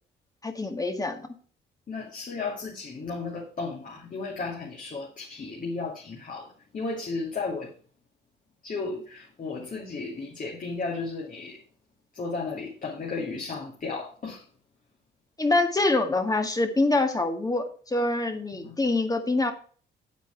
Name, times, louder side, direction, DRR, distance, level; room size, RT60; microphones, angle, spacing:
voice 1, 0.4-1.3 15.4-19.5, left 2 dB, 20° left, 1.9 m, -25 dB
voice 2, 1.9-7.8 8.6-11.6 12.1-14.4 18.5-18.8, left 4 dB, 45° left, 2.6 m, -34 dB
9.3 x 7.6 x 4.7 m
cardioid pair, 90°, 20 cm